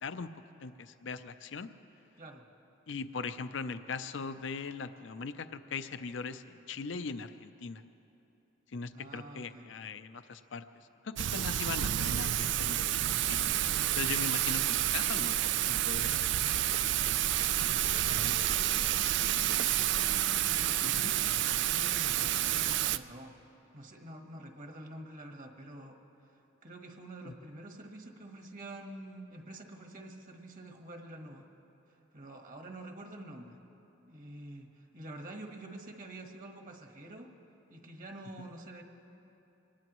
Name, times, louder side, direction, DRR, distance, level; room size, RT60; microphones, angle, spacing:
voice 1, 0.6-1.7 2.9-7.8 8.7-13.4 14.0-16.4 16.8-17.1 20.8-21.1 27.2-27.3, left 5 dB, 65° left, 11 dB, 0.5 m, -40 dB
voice 2, 2.2-2.5 8.9-9.8 17.6-21.3 21.6-23.4 23.7-26.0 26.3-31.5 32.1-33.6 34.1-37.4 37.7-38.8, right 1 dB, 40° right, 3 dB, 1.4 m, -47 dB
Thunder / Rain, 11.2-23.0, right 12 dB, 60° right, 0.4 m, -29 dB
25.0 x 19.0 x 3.1 m, 3.0 s
head